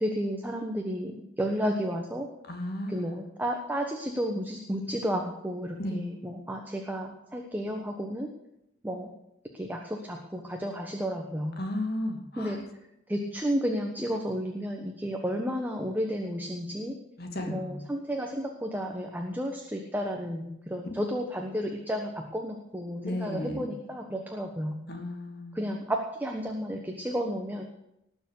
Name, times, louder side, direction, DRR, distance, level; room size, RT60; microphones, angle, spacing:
voice 1, 0.0-2.3 2.9-8.3 8.8-9.1 9.5-11.6 12.4-12.6 13.1-17.0 17.5-24.8 25.5-27.6, equal, 10° right, 2 dB, 1.2 m, -32 dB
voice 2, 2.5-3.1 5.8-6.0 11.6-12.6 17.2-17.8 20.8-20.9 23.0-23.7 24.9-25.6, left 1 dB, 50° left, 3 dB, 2.5 m, -34 dB
19.0 x 7.0 x 8.3 m, 0.83 s
head